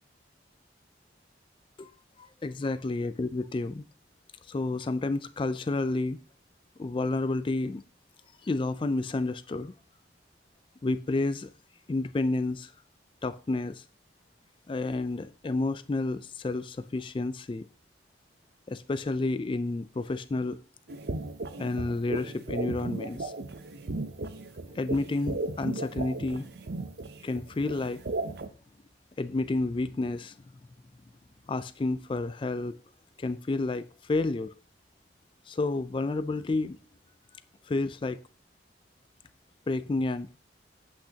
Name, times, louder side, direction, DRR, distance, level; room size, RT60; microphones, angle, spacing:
voice 1, 2.2-3.8 4.5-6.2 6.8-7.8 8.4-9.7 10.8-11.5 11.9-12.7 13.2-13.8 14.7-17.7 18.7-20.6 21.6-23.3 24.8-26.5 27.2-28.0 29.2-30.3 31.5-32.8 33.2-34.5 35.5-36.8 37.7-38.2 39.7-40.3, left 2 dB, 30° left, 0.3 m, -30 dB
sound 1, 20.9-28.5, right 2 dB, 60° right, 0.6 m, -36 dB
8.7 x 8.3 x 2.8 m
head